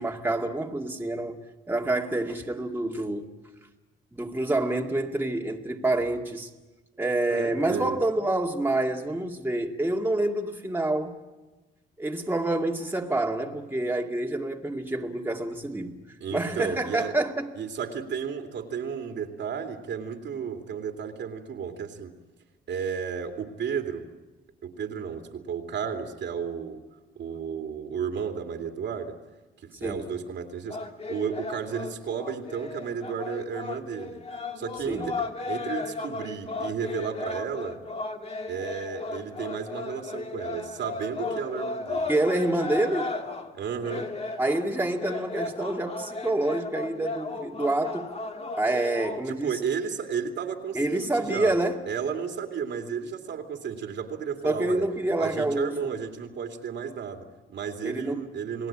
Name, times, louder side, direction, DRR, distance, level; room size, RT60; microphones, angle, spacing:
voice 1, 0.0-1.4 1.7-3.3 4.1-6.5 7.0-11.2 12.0-16.0 16.3-17.5 29.8-30.1 34.9-35.1 42.1-43.1 44.4-48.1 48.6-49.6 50.7-51.8 54.4-55.9 57.8-58.3, right 2 dB, 10° right, 2.2 m, -27 dB
voice 2, 7.3-8.0 16.2-17.1 17.6-22.1 22.7-24.0 24.6-26.8 27.1-29.1 29.6-34.2 34.6-35.1 35.5-37.8 38.5-42.0 43.5-44.1 45.4-45.5 49.3-51.5 51.9-54.9 55.2-58.7, right 7 dB, 65° right, 2.7 m, -33 dB
sound 1, 30.7-49.2, left 3 dB, 30° left, 2.1 m, -35 dB
29.0 x 18.5 x 8.8 m
cardioid pair, 90°, 20 cm